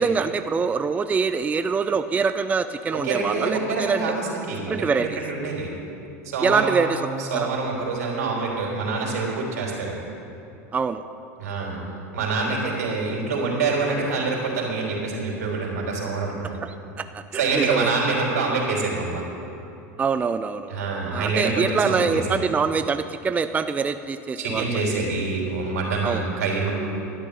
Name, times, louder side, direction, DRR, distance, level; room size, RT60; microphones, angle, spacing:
voice 1, 0.0-4.1 4.7-5.2 6.4-7.1 7.3-7.5 10.7-11.0 17.0-17.9 20.0-20.7 21.1-24.7 26.0-26.2, right 5 dB, 20° right, 9 dB, 0.4 m, -24 dB
voice 2, 2.9-5.7 6.2-10.0 11.4-11.8 12.1-16.5 17.3-19.2 20.7-22.4 24.4-26.7, right 3 dB, 85° right, -2 dB, 3.5 m, -26 dB
12.0 x 9.0 x 6.8 m, 2.8 s
hypercardioid pair, 100°, 8 cm